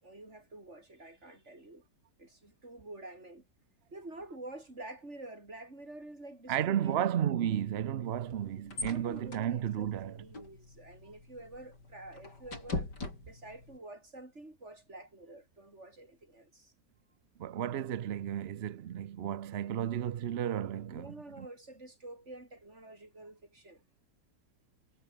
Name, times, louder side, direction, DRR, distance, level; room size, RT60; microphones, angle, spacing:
voice 1, 0.0-1.8 2.2-3.5 3.9-7.0 8.7-12.9 13.2-16.7 20.9-23.8, right 2 dB, 40° right, 6.1 m, -48 dB
voice 2, 6.5-10.2 17.4-21.5, right 10 dB, 60° right, 0.7 m, -33 dB
sound 1, 8.0-13.8, left 3 dB, 85° left, 6.1 m, -43 dB
omnidirectional pair, 1.8 m